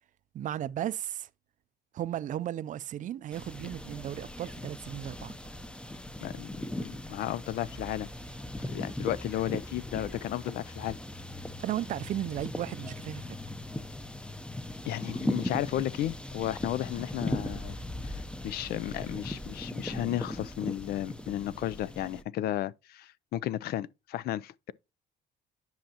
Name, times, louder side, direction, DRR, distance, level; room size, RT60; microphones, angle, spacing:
voice 1, 0.3-1.3 1.9-5.3 11.6-13.4, right 12 dB, 50° right, 0.4 m, -35 dB
sound 1, 3.3-22.2, left 1 dB, 5° left, 0.6 m, -38 dB
voice 2, 6.2-8.1 8.7-11.0 14.9-17.8 18.0-18.2 18.4-24.5, left 13 dB, 65° left, 0.4 m, -34 dB
10.5 x 5.6 x 2.8 m
cardioid pair, 110°, 17 cm